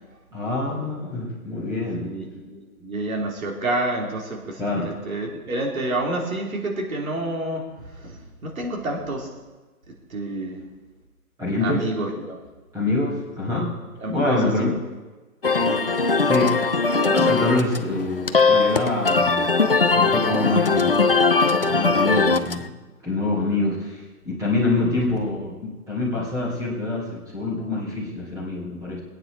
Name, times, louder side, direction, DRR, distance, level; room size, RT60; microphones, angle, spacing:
voice 1, 0.3-2.1 4.6-4.9 11.4-12.0 12.7-13.8 14.1-14.7 16.2-16.6 17.1-19.4 19.9-21.1 21.5-22.7 23.0-29.0, left 2 dB, 10° right, -5 dB, 2.6 m, -25 dB
voice 2, 2.0-9.3 10.1-10.6 11.6-12.4 13.5-13.7 14.0-14.7 15.6-15.8, right 2 dB, 65° right, 0 dB, 3.4 m, -29 dB
sound 1, 15.4-22.7, left 4 dB, 40° left, 0.4 m, -20 dB
19.5 x 9.2 x 4.7 m, 1.2 s
hypercardioid pair, 160°, 45 cm